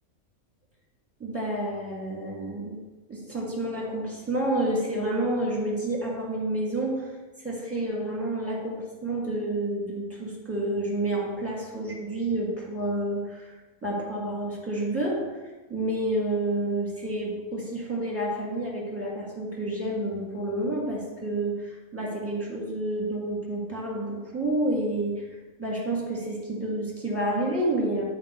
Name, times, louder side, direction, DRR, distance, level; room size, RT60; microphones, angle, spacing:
voice 1, 1.2-2.8 3.1-7.2 7.4-25.2 25.6-28.0, right 1 dB, 10° right, -3 dB, 1.6 m, -29 dB
8.8 x 4.3 x 4.3 m, 1.2 s
omnidirectional pair, 1.5 m